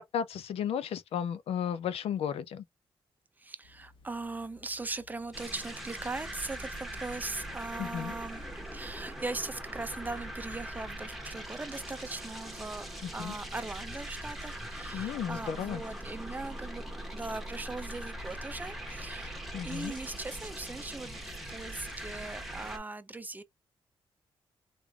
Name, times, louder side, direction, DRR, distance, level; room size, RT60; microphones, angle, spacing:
voice 1, 0.1-2.6 7.8-8.1 13.0-13.3 14.9-15.8 19.5-19.9, left 8 dB, 90° left, 0.5 m, -34 dB
voice 2, 3.4-12.9 13.1-16.9 17.1-19.4 19.6-23.4, right 3 dB, 15° right, 0.5 m, -40 dB
sound 1, 3.6-22.2, left 3 dB, 60° left, 1.1 m, -60 dB
sound 2, 5.3-22.8, right 1 dB, ahead, 1.0 m, -41 dB
3.6 x 3.2 x 2.3 m
wide cardioid pair, 125°, 10 cm